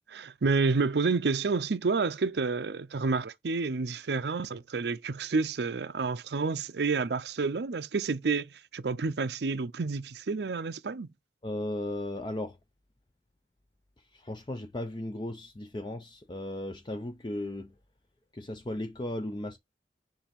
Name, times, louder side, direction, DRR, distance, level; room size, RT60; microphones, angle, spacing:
voice 1, 0.1-11.1, right 4 dB, 75° right, 0.5 m, -29 dB
voice 2, 11.4-12.6 14.1-17.7 18.3-19.6, left 1 dB, 25° left, 0.5 m, -36 dB
7.2 x 2.7 x 5.2 m
head